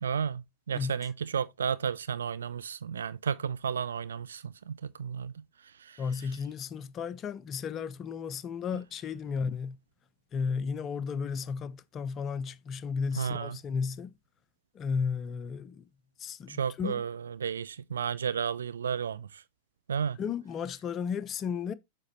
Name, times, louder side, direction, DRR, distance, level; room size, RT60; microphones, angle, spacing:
voice 1, 0.0-5.4 5.8-6.0 13.2-13.6 16.5-19.4 19.9-20.2, right 7 dB, 70° right, 0.3 m, -33 dB
voice 2, 0.7-1.1 6.0-9.8 10.3-14.1 14.7-15.9 16.2-17.0 20.2-21.7, left 6 dB, 30° left, 0.6 m, -34 dB
7.4 x 5.2 x 3.1 m
figure-of-eight pair, 90°, 0 cm